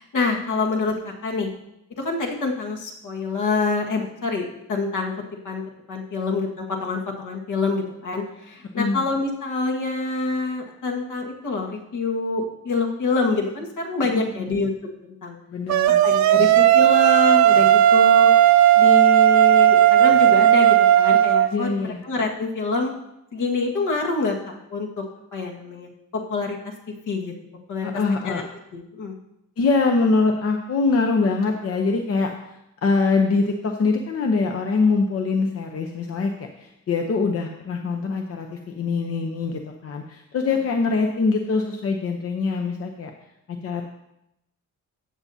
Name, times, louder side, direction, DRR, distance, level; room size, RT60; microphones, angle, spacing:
voice 1, 0.0-1.5 2.0-5.1 5.4-5.6 5.9-14.7 15.2-15.4 16.0-18.3 18.7-22.9 23.3-25.0 25.3-26.6 27.1-27.3 27.7-27.9 28.3-28.4 28.7-29.2, left 3 dB, 65° left, 1 dB, 1.8 m, -26 dB
voice 2, 14.1-14.5 15.5-16.0 16.3-16.5 21.5-22.0 27.8-28.4 29.6-32.3 32.8-43.1 43.5-43.8, left 4 dB, 45° left, 3 dB, 0.8 m, -23 dB
sound 1, 15.7-21.5, right 11 dB, 60° right, 0.5 m, -15 dB
14.5 x 8.6 x 2.8 m, 0.84 s
wide cardioid pair, 165°, 33 cm